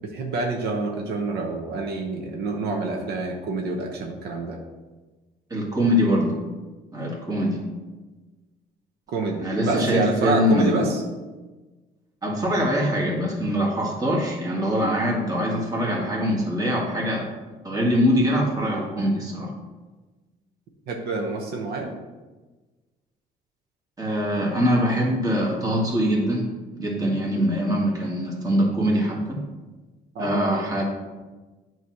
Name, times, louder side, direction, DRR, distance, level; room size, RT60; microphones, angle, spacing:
voice 1, 0.0-4.6 9.1-11.0 20.9-21.9 30.1-30.7, right 3 dB, 75° right, 2 dB, 0.9 m, -27 dB
voice 2, 5.5-6.3 6.9-7.6 9.4-10.9 12.2-17.3 17.6-19.5 24.0-26.5 26.7-29.4 30.2-30.8, equal, 20° right, -2 dB, 1.9 m, -23 dB
8.5 x 3.1 x 6.1 m, 1.3 s
cardioid pair, 110°, 17 cm